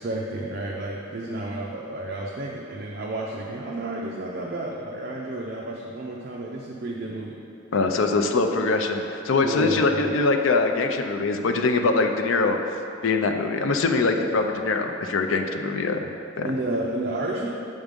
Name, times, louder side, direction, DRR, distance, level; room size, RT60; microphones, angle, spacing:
voice 1, 0.0-7.4 9.4-10.2 16.4-17.5, right 1 dB, 50° right, -3 dB, 0.5 m, -31 dB
voice 2, 7.7-12.6 13.0-16.5, left 3 dB, 80° left, 5 dB, 0.5 m, -23 dB
7.2 x 3.6 x 5.2 m, 2.7 s
head